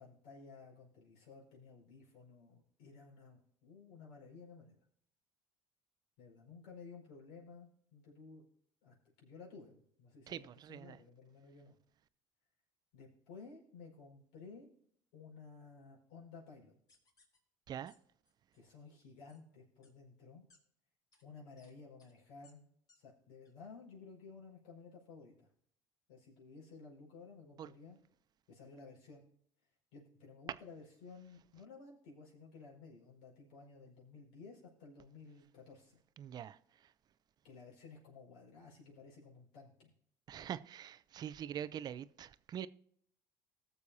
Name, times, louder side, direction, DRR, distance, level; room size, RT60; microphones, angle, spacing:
voice 1, 0.0-4.7 6.2-8.4 8.8-11.8 12.9-14.7 15.1-16.7 18.5-20.4 21.2-22.7 23.0-25.5 26.1-28.0 28.5-29.2 29.9-36.0 37.4-39.9, left 4 dB, 80° left, 5.2 m, -55 dB
voice 2, 10.3-11.0 17.7-17.9 27.6-27.7 36.2-36.9 40.3-42.7, right 9 dB, 50° right, 0.6 m, -44 dB
sound 1, 16.9-17.4 17.9-18.0 18.3-18.6 19.3-19.4 19.8-19.9 20.5-20.6 21.1-21.2 21.6-21.7 22.0-22.1 22.4-22.5 22.9-23.0 23.5-23.6, left 3 dB, 45° left, 3.8 m, -68 dB
20.0 x 7.0 x 2.8 m
supercardioid pair, 90°, 9 cm